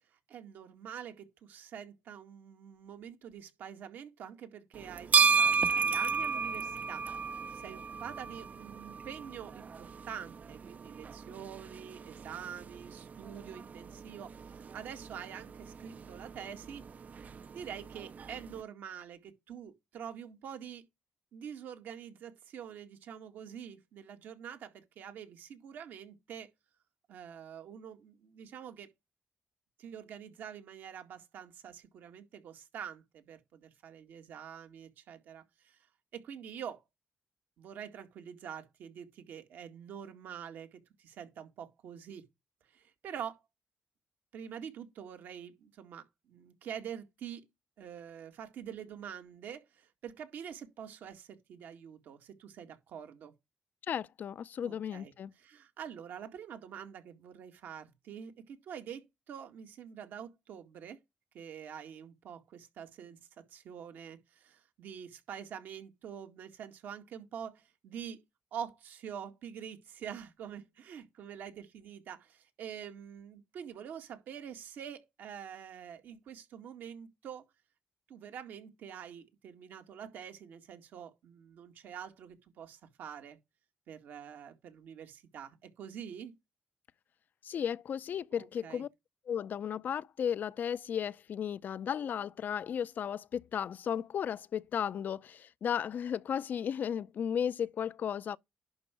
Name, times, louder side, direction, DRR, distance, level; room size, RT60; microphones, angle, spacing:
voice 1, 0.3-7.1 7.5-16.8 17.1-20.9 21.3-26.5 27.1-28.9 29.8-35.8 36.1-36.8 37.6-42.2 42.7-43.4 44.3-47.5 47.8-53.3 54.6-61.0 61.3-68.2 68.5-77.5 78.1-83.4 83.9-86.3 88.3-88.8, right 8 dB, 80° right, 1.9 m, -46 dB
sound 1, 4.7-18.6, right 5 dB, 50° right, 0.5 m, -34 dB
voice 2, 53.9-55.3 87.4-88.9 89.3-98.4, left 8 dB, 65° left, 0.5 m, -35 dB
11.0 x 4.5 x 5.1 m
supercardioid pair, 50°, 3 cm